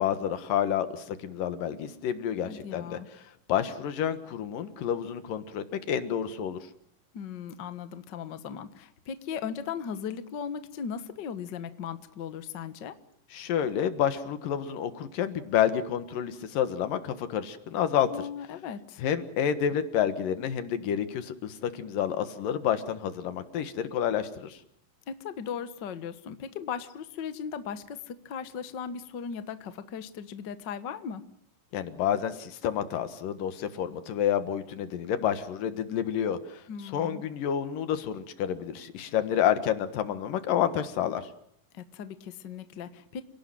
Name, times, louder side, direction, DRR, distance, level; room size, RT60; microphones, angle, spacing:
voice 1, 0.0-3.0 3.5-6.6 13.3-18.1 19.0-24.6 31.7-36.6 36.9-41.3, left 9 dB, 75° left, 10 dB, 3.2 m, -29 dB
voice 2, 2.4-3.1 7.1-12.9 18.1-19.0 25.1-31.2 36.7-37.2 41.7-43.2, left 7 dB, 55° left, 11 dB, 1.2 m, -37 dB
28.5 x 17.5 x 7.6 m, 0.69 s
omnidirectional pair, 3.9 m